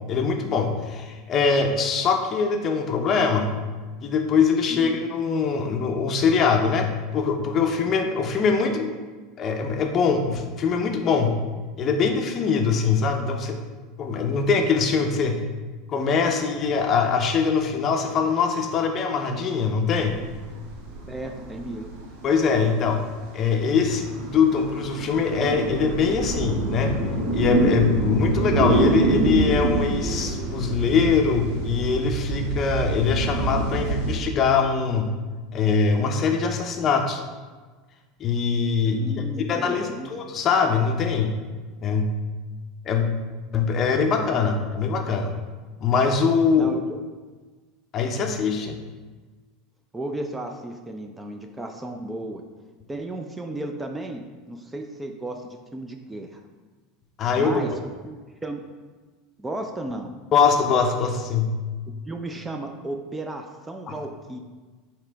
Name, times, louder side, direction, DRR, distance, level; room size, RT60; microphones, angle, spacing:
voice 1, 0.1-3.5 4.0-8.9 9.4-11.4 11.8-13.6 14.0-15.4 15.9-20.2 22.2-23.0 23.3-26.9 27.3-35.1 35.5-37.2 38.2-41.4 41.8-42.1 42.9-43.1 43.5-45.3 45.8-46.8 47.9-48.8 57.2-57.6 60.3-61.6 63.9-64.0, left 5 dB, 40° left, 4 dB, 0.5 m, -22 dB
sound 1, 19.9-34.2, right 2 dB, 70° right, 0.8 m, -26 dB
voice 2, 21.1-21.9 38.9-40.1 46.6-47.0 49.9-52.4 52.9-56.4 57.4-57.7 58.0-58.2 58.4-58.6 59.4-60.1 62.1-64.4, right 2 dB, 15° right, 4 dB, 0.4 m, -34 dB
4.9 x 2.9 x 3.3 m, 1.4 s
supercardioid pair, 105°, 0 cm